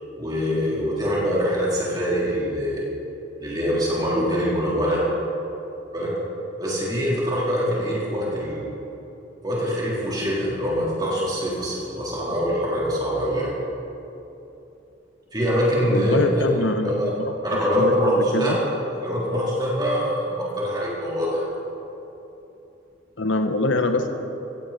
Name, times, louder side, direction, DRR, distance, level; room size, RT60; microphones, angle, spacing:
voice 1, 0.2-2.9 3.4-5.0 5.9-6.1 6.6-8.7 9.4-13.5 15.3-17.1 17.4-18.6 19.0-21.5, equal, 20° right, -6 dB, 3.8 m, -24 dB
voice 2, 15.9-17.3 17.7-18.6 23.2-24.1, left 2 dB, 80° left, 6 dB, 1.1 m, -24 dB
15.5 x 15.5 x 4.2 m, 3.0 s
head